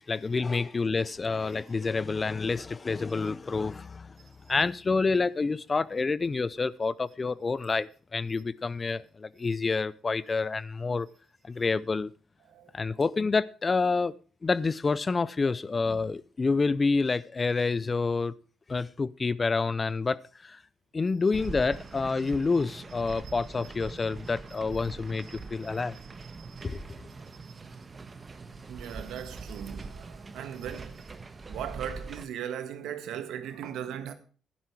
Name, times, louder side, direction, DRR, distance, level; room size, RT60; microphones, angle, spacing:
voice 1, 0.0-4.2 4.5-11.1 11.4-12.1 12.7-14.1 14.4-18.3 18.7-20.6 20.9-26.0 26.6-26.8, left 4 dB, 30° left, 0.5 m, -28 dB
sound 1, 21.3-32.3, right 3 dB, 30° right, 1.3 m, -43 dB
voice 2, 25.3-25.8 26.2-26.8 27.4-27.5 28.7-31.1 31.5-34.1, right 9 dB, 85° right, 1.5 m, -39 dB
11.5 x 10.5 x 4.7 m
cardioid pair, 90°, 0 cm